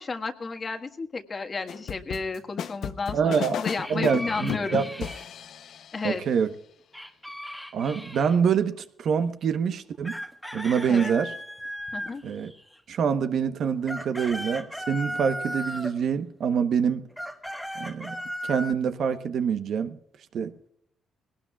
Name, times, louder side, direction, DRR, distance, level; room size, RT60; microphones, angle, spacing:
voice 1, 0.0-4.8 5.9-6.2 10.9-11.1 11.9-12.2, left 4 dB, 35° left, 1.5 m, -32 dB
sound 1, 1.7-6.0, left 8 dB, 70° left, 0.7 m, -33 dB
voice 2, 3.1-3.5 3.9-4.8 6.0-6.5 7.7-10.2 10.5-11.3 12.2-12.5 12.9-17.0 17.7-20.0 20.3-20.5, right 7 dB, 65° right, 1.0 m, -25 dB
sound 2, 3.8-5.3 6.9-8.4 10.0-12.8 13.6-16.0 17.1-18.7, equal, 5° left, 1.4 m, -36 dB
20.5 x 18.0 x 2.4 m
cardioid pair, 90°, 0 cm